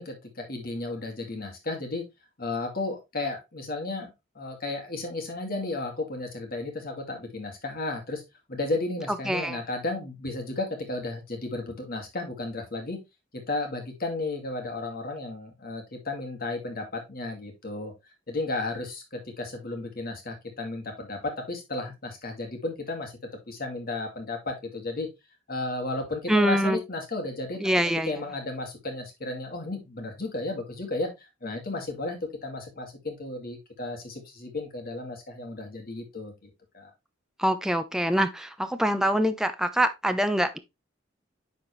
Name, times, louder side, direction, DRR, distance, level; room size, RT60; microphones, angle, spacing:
voice 1, 0.0-2.1 2.4-8.2 8.5-13.0 13.3-17.9 18.3-23.2 23.5-25.1 25.5-27.6 28.0-36.9, left 2 dB, 50° left, 2.4 m, -33 dB
voice 2, 9.3-9.6 26.3-26.8 27.6-28.1 37.4-40.6, equal, 5° right, 0.7 m, -24 dB
9.8 x 4.5 x 3.2 m
head